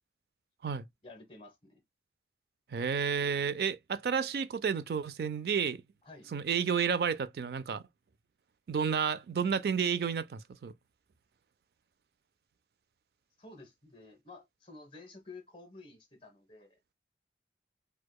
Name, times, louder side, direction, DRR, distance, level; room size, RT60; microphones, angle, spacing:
voice 1, 1.0-1.8 6.0-6.3 13.4-16.8, left 3 dB, 30° left, 1.0 m, -52 dB
voice 2, 2.7-5.8 6.3-7.8 8.7-10.7, right 6 dB, 60° right, 0.3 m, -31 dB
4.6 x 2.2 x 2.2 m
head